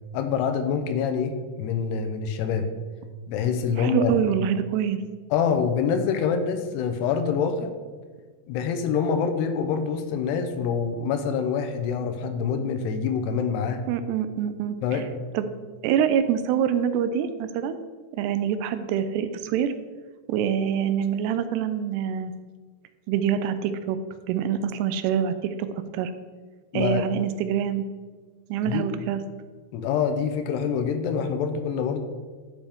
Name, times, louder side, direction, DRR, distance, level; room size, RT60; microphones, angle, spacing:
voice 1, 0.1-2.7 3.3-4.1 5.3-7.7 8.5-13.8 14.8-15.2 26.7-27.0 28.7-28.8 29.7-32.0, left 6 dB, 85° left, 8 dB, 2.8 m, -26 dB
voice 2, 3.8-5.0 13.9-15.0 15.3-15.5 15.8-17.8 18.1-19.7 20.3-22.3 23.1-24.0 24.3-26.1 26.7-27.9 28.5-29.2, right 8 dB, 85° right, 11 dB, 2.7 m, -25 dB
10.5 x 7.1 x 3.6 m, 1.5 s
omnidirectional pair, 4.7 m